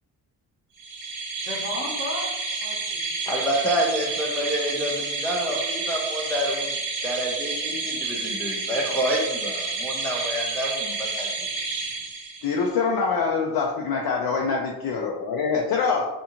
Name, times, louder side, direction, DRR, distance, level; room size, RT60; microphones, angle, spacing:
sound 1, 0.8-12.6, right 3 dB, 85° right, 0.8 m, -30 dB
voice 1, 1.3-3.5, left 2 dB, 30° left, -3 dB, 0.9 m, -35 dB
voice 2, 3.3-6.7 7.0-11.4, equal, 5° left, -4 dB, 0.5 m, -28 dB
voice 3, 12.4-16.0, left 5 dB, 60° left, -1 dB, 0.5 m, -24 dB
2.6 x 2.5 x 2.8 m, 1.1 s
cardioid pair, 65°, 42 cm